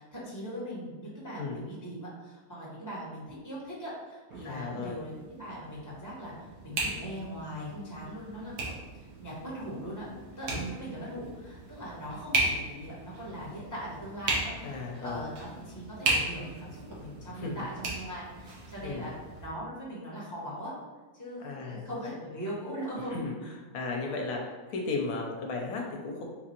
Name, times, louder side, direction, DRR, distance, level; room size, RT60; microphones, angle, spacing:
voice 1, 0.0-10.1 10.4-19.1 19.4-20.7 21.1-23.1, equal, 15° left, -6 dB, 1.2 m, -40 dB
sound 1, 4.3-19.5, right 2 dB, 85° right, 1.4 m, -36 dB
voice 2, 4.4-5.0 10.5-10.6 14.6-15.3 17.3-17.7 18.8-19.1 21.4-22.1 23.1-23.3 23.7-24.4 24.7-26.2, left 3 dB, 80° left, 0 dB, 1.1 m, -35 dB
3.9 x 2.5 x 4.3 m, 1.3 s
omnidirectional pair, 1.5 m